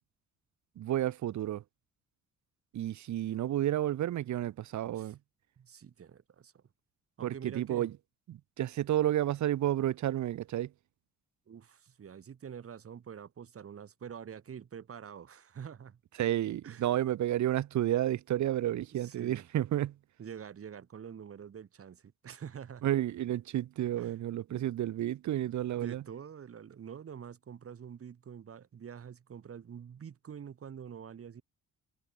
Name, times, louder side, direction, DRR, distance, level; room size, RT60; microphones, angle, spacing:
voice 1, 0.8-1.6 2.7-5.2 7.2-7.9 8.3-10.7 16.2-20.0 22.8-26.0, right 12 dB, 70° right, 1.5 m, -31 dB
voice 2, 5.6-6.6 7.2-7.9 11.5-16.0 16.6-16.9 19.0-19.5 20.2-22.9 24.0-24.2 24.5-24.7 25.8-31.4, right 8 dB, 50° right, 3.1 m, -46 dB
cardioid pair, 90°, 30 cm